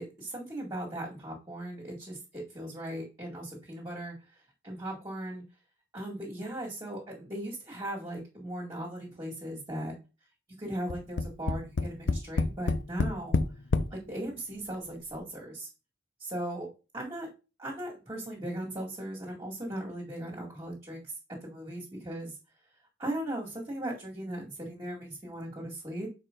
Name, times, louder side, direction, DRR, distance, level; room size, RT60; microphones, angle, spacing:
voice 1, 0.0-4.1 4.6-5.4 5.9-10.0 10.5-13.4 13.9-15.7 16.2-17.3 17.6-22.4 23.0-26.1, right 1 dB, 20° right, -4 dB, 2.1 m, -38 dB
Tap, 10.9-13.9 14.7-14.8 15.1-15.2, left 3 dB, 80° left, 0.6 m, -28 dB
6.7 x 4.6 x 3.8 m, 0.30 s
head